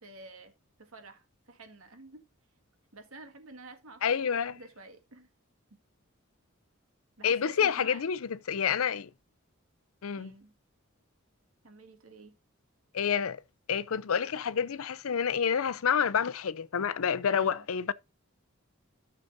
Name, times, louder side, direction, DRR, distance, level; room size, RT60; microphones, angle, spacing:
voice 1, 0.0-0.5 0.8-2.2 2.9-5.3 5.7-5.8 7.2-8.0 10.2-10.5 11.6-12.3 17.3-17.7, right 2 dB, 80° right, 1.8 m, -50 dB
voice 2, 4.0-4.6 7.2-9.1 10.0-10.3 12.9-13.4 13.7-17.9, left 7 dB, 80° left, 0.5 m, -28 dB
13.0 x 6.6 x 2.6 m
head